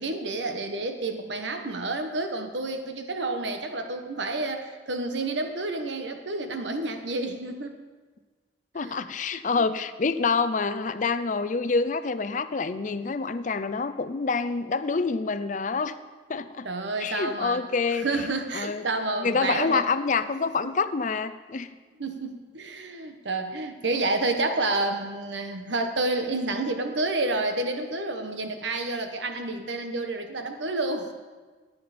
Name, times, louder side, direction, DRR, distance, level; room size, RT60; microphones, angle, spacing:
voice 1, 0.0-7.8 8.8-9.0 9.6-9.7 16.6-17.6 17.9-19.8 22.0-31.1, right 2 dB, 85° right, 6 dB, 1.2 m, -29 dB
voice 2, 8.7-16.0 16.3-16.7 17.0-18.1 18.5-18.9 19.2-21.7, left 4 dB, 45° left, 12 dB, 0.5 m, -27 dB
14.5 x 9.4 x 4.3 m, 1.3 s
head